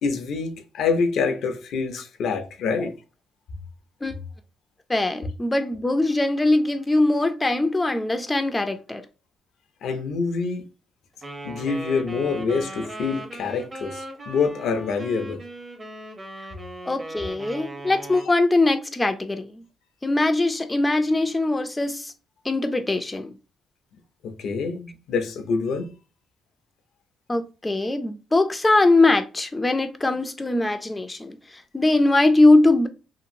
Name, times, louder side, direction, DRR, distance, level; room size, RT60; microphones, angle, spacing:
voice 1, 0.0-2.9 9.8-10.6 11.4-15.4 24.2-26.0, left 5 dB, 75° left, 0.5 m, -26 dB
voice 2, 4.9-9.1 16.9-19.6 20.0-22.1 22.4-23.3 27.3-32.9, left 2 dB, 15° left, 0.4 m, -21 dB
Wind instrument woodwind instrument, 11.2-18.3, right 1 dB, 30° right, 0.7 m, -38 dB
2.8 x 2.4 x 2.6 m
cardioid pair, 90°, 0 cm